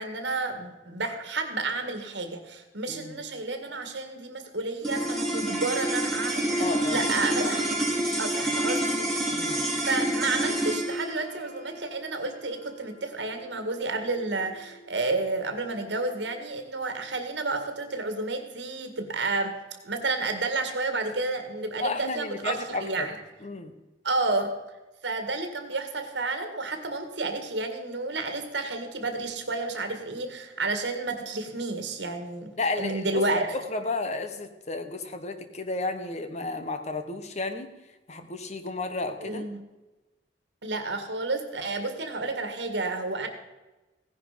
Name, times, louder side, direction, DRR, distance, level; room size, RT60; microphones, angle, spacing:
voice 1, 0.0-7.7 8.2-9.1 9.8-19.6 19.8-23.1 24.0-24.5 25.0-33.5 39.2-39.6 40.6-43.3, right 3 dB, 70° right, 7 dB, 2.0 m, -31 dB
voice 2, 2.9-3.2 6.6-7.0 8.4-8.6 9.3-9.7 21.8-23.1 23.4-23.7 32.6-37.7 38.1-39.4, left 3 dB, 40° left, 8 dB, 1.2 m, -32 dB
sound 1, 4.8-15.3, right 1 dB, ahead, 3.2 m, -29 dB
16.5 x 10.5 x 5.2 m, 1.1 s
head